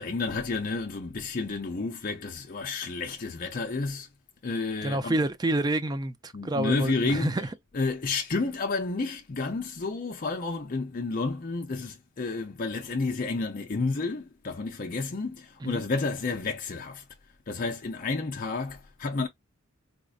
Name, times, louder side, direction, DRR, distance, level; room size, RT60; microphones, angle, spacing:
voice 1, 0.0-4.1 4.4-5.2 6.3-7.3 7.7-17.0 17.5-19.3, left 3 dB, 40° left, 0.5 m, -31 dB
voice 2, 4.8-7.5 15.6-15.8, right 1 dB, 20° right, 0.4 m, -28 dB
4.1 x 2.5 x 2.4 m
head